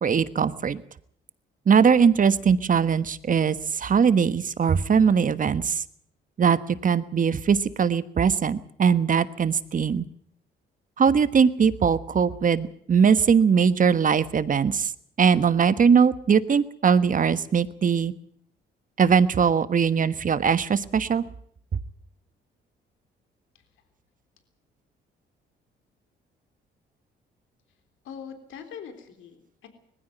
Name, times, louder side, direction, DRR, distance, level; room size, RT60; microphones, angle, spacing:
voice 1, 0.0-0.8 1.7-5.8 6.4-10.0 11.0-14.9 15.2-18.1 19.0-21.2, right 6 dB, 40° right, 14 dB, 1.3 m, -21 dB
voice 2, 28.0-29.7, left 7 dB, 80° left, 7 dB, 3.6 m, -42 dB
20.0 x 15.5 x 9.3 m, 0.64 s
cardioid pair, 90°, 20 cm